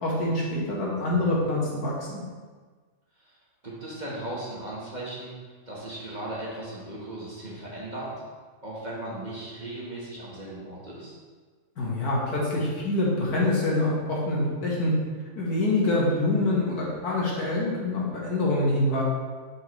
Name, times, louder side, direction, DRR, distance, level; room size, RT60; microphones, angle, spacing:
voice 1, 0.0-2.2 11.8-14.9 15.4-19.0, left 2 dB, 85° left, -4 dB, 1.9 m, -25 dB
voice 2, 0.9-1.4 3.2-3.4 3.6-8.1 8.6-11.1, right 1 dB, 30° right, -6 dB, 1.3 m, -37 dB
6.4 x 5.4 x 3.1 m, 1.5 s
omnidirectional pair, 1.6 m